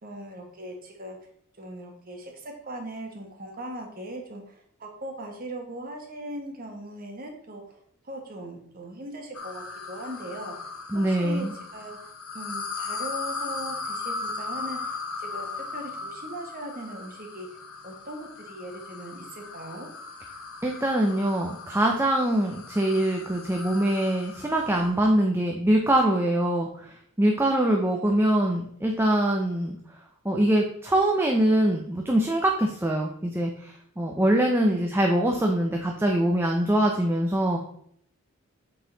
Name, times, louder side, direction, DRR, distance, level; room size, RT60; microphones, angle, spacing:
voice 1, 0.0-1.2 1.6-7.7 8.0-10.5 10.9-12.0 12.3-17.5 17.8-19.9 27.5-27.7 34.7-34.9, right 1 dB, 40° right, 2 dB, 1.3 m, -39 dB
sound 1, 9.3-25.0, left 4 dB, 80° left, 1.0 m, -38 dB
voice 2, 10.9-11.5 20.6-29.8 30.2-37.6, right 1 dB, 10° right, 1 dB, 0.6 m, -23 dB
8.1 x 3.9 x 3.9 m, 0.66 s
head